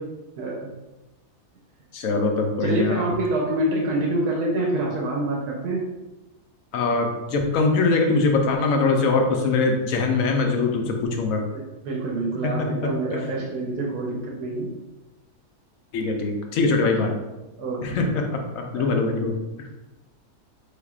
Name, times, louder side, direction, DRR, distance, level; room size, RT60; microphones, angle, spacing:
voice 1, 0.4-0.7 2.6-5.8 11.5-14.7 17.6-18.3 18.7-18.9, right 2 dB, 80° right, -2 dB, 1.2 m, -26 dB
voice 2, 1.9-3.1 6.7-11.4 13.1-13.2 15.9-17.1 17.8-19.7, left 3 dB, 65° left, 3 dB, 1.0 m, -22 dB
4.9 x 3.4 x 2.4 m, 1.0 s
omnidirectional pair, 1.7 m